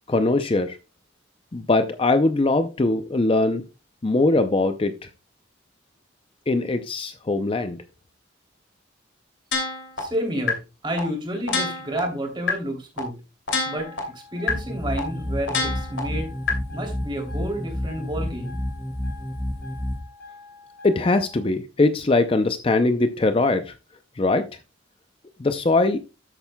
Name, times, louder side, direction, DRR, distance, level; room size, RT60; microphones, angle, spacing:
voice 1, 0.1-0.8 1.5-3.6 4.0-5.1 6.5-7.8 20.8-23.7 24.2-24.5 25.4-26.0, left 2 dB, 30° left, 9 dB, 0.5 m, -21 dB
sound 1, 9.5-10.0 10.5-10.6 11.0-11.1 11.5-12.0 12.5-12.6 13.0-13.1 13.5-14.0 14.5-14.6 15.0-15.1 15.5-16.0 16.5-16.6, left 4 dB, 75° left, 2.7 m, -25 dB
voice 2, 10.0-13.1 13.6-16.3 16.7-18.6, equal, 25° right, 3 dB, 2.9 m, -30 dB
sound 2, 13.8-21.4, left 4 dB, 50° left, 4.1 m, -46 dB
sound 3, 14.5-20.0, left 1 dB, 10° left, 0.9 m, -30 dB
12.5 x 8.9 x 2.2 m, 0.29 s
head